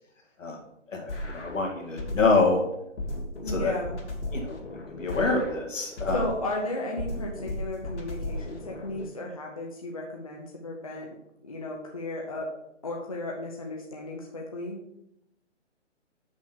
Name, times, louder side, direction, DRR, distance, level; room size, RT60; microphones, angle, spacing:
voice 1, 0.9-2.6 3.5-3.7 4.3-4.6 5.0-6.2, left 3 dB, 90° left, 1 dB, 2.1 m, -26 dB
sound 1, 1.1-2.5 3.0-6.5 7.0-9.1, left 1 dB, 65° left, 2.4 m, -35 dB
voice 2, 3.4-4.0 6.1-11.1 11.4-12.5 12.8-14.8, left 2 dB, 30° left, -1 dB, 0.7 m, -34 dB
6.3 x 5.9 x 5.7 m, 0.81 s
hypercardioid pair, 175°, 37 cm